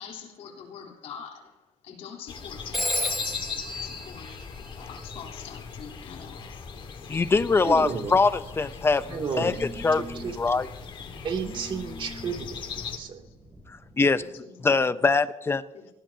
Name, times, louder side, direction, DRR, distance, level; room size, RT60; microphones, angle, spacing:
voice 1, 0.0-1.6 1.8-4.4 4.8-6.6 7.1-7.6 13.2-13.4 14.2-15.0 15.7-15.9, left 7 dB, 70° left, 3.9 m, -44 dB
sound 1, 2.3-13.0, left 6 dB, 45° left, 2.0 m, -39 dB
Telephone, 2.7-5.2, equal, ahead, 5.2 m, -32 dB
Telephone 2, 6.1-14.2, right 1 dB, 25° right, 8.0 m, -47 dB
voice 2, 7.1-10.0 10.4-10.7 13.7-14.2 14.6-15.6, left 4 dB, 20° left, 0.8 m, -23 dB
voice 3, 7.6-8.2 9.1-9.6 10.1-10.4 11.2-13.2, right 5 dB, 50° right, 2.9 m, -32 dB
24.0 x 19.0 x 2.9 m
cardioid pair, 120°, 11 cm